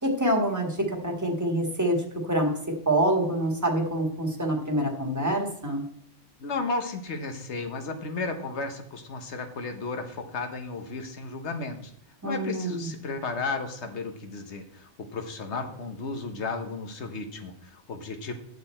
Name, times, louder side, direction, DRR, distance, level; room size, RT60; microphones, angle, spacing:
voice 1, 0.0-2.0 2.2-2.5 2.8-5.8 12.2-12.9, right 1 dB, 15° right, 1 dB, 1.6 m, -26 dB
voice 2, 6.4-11.9 12.2-18.3, left 3 dB, 70° left, 7 dB, 1.5 m, -34 dB
9.9 x 6.8 x 4.4 m, 0.71 s
omnidirectional pair, 1.2 m